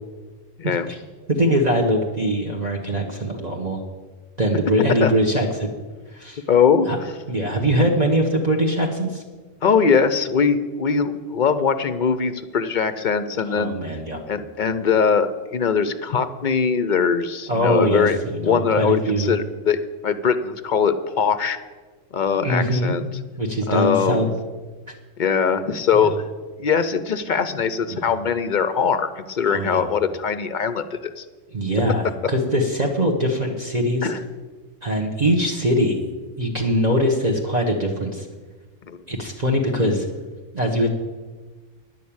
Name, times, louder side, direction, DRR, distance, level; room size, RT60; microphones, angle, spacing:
voice 1, 0.6-1.0 1.3-3.8 4.4-5.7 6.1-6.4 6.9-7.0 7.3-9.2 13.5-14.2 17.5-19.3 22.4-24.2 27.9-28.1 29.5-29.9 31.5-34.1 34.8-36.0 36.4-38.3 39.1-40.1 40.5-40.9, equal, 35° right, 0 dB, 1.2 m, -22 dB
voice 2, 6.5-6.9 9.6-13.8 14.3-18.2 18.4-19.8 20.0-21.6 22.1-23.1 23.7-24.3 25.2-26.1 26.6-31.2 34.0-34.2 38.9-39.0, left 6 dB, 50° left, 12 dB, 0.6 m, -21 dB
10.5 x 6.4 x 8.6 m, 1.3 s
omnidirectional pair, 1.3 m